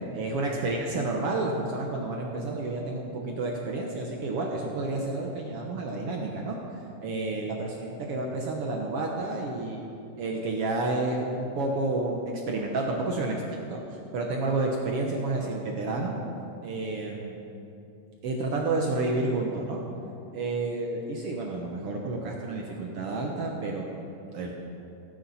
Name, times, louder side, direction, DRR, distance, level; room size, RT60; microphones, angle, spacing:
voice 1, 0.1-6.6 7.0-9.8 10.2-13.8 14.1-16.1 16.6-17.4 18.2-19.8 20.3-23.8 24.3-24.6, right 2 dB, 65° right, 0 dB, 1.5 m, -30 dB
16.5 x 9.4 x 4.2 m, 2.7 s
omnidirectional pair, 3.7 m